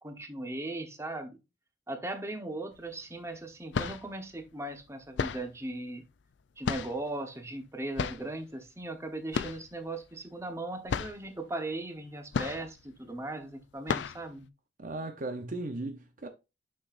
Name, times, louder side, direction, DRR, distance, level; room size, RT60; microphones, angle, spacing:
voice 1, 0.0-1.4 1.9-6.1 6.6-14.5, right 2 dB, 15° right, 1.0 m, -38 dB
sound 1, 2.8-2.9 3.5-4.2 5.2-5.6 6.6-7.2 8.0-8.3 9.3-9.8 10.0-10.1 10.5-10.6 10.9-11.3 12.3-12.9 13.3-13.4 13.9-14.3, left 6 dB, 80° left, 0.4 m, -33 dB
voice 2, 14.8-16.3, right 2 dB, 45° right, 0.8 m, -37 dB
6.3 x 6.1 x 2.5 m
head